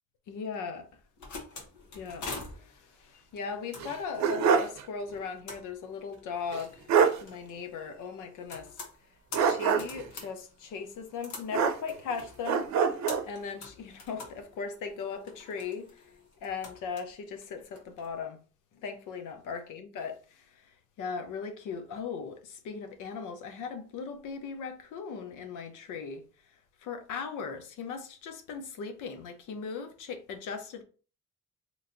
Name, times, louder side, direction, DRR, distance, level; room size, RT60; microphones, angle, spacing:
voice 1, 0.3-0.9 1.9-2.3 2.6-6.9 7.2-8.7 9.4-12.7 13.2-15.9 16.4-18.4 18.8-20.4 21.0-26.2 26.8-30.8, left 5 dB, 85° left, 0.7 m, -38 dB
sound 1, 0.9-18.1, left 3 dB, 70° left, 1.2 m, -47 dB
sound 2, 3.8-4.8 5.1-5.2 6.5-6.6 6.9-7.2 9.3-10.1 11.5-12.1 12.4-13.3, right 6 dB, 65° right, 0.6 m, -25 dB
3.1 x 2.6 x 3.8 m
cardioid pair, 90°, 30 cm